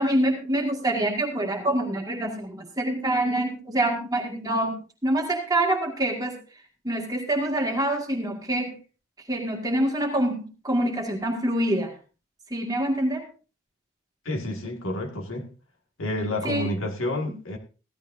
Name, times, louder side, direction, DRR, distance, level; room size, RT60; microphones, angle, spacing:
voice 1, 0.0-6.4 6.8-8.8 9.3-12.0 12.5-13.3 16.4-16.7 17.3-17.4, right 1 dB, 20° right, 1 dB, 2.0 m, -26 dB
voice 2, 14.3-15.5 16.0-17.6, left 1 dB, 75° left, 3 dB, 2.0 m, -29 dB
15.5 x 12.5 x 2.7 m, 0.34 s
head